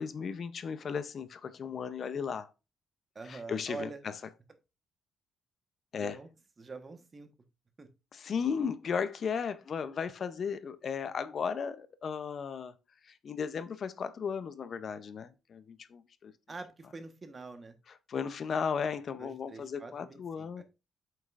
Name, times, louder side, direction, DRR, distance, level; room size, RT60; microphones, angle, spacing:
voice 1, 0.0-2.5 3.3-4.1 5.9-6.2 8.1-12.7 13.1-16.3 18.1-20.6, left 6 dB, 55° left, 0.6 m, -35 dB
voice 2, 3.1-4.0 6.0-6.3 6.6-7.3 7.8-7.9 16.5-17.7 19.2-20.6, right 3 dB, 30° right, 1.2 m, -45 dB
7.4 x 5.5 x 2.5 m
cardioid pair, 90°, 0 cm